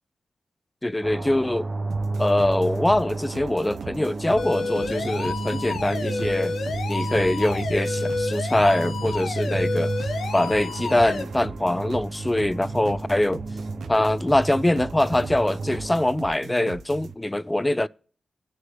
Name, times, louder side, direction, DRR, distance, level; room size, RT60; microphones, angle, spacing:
voice 1, 0.8-1.7 2.2-6.6 6.9-9.9 10.3-13.4 13.9-17.9, left 1 dB, 20° left, 0.5 m, -23 dB
sound 1, 1.0-16.0, right 2 dB, 45° right, 0.7 m, -32 dB
sound 2, 1.9-17.1, right 7 dB, 85° right, 0.6 m, -40 dB
sound 3, 4.4-11.2, left 4 dB, 85° left, 1.2 m, -30 dB
18.5 x 6.5 x 3.0 m
cardioid pair, 45°, 0 cm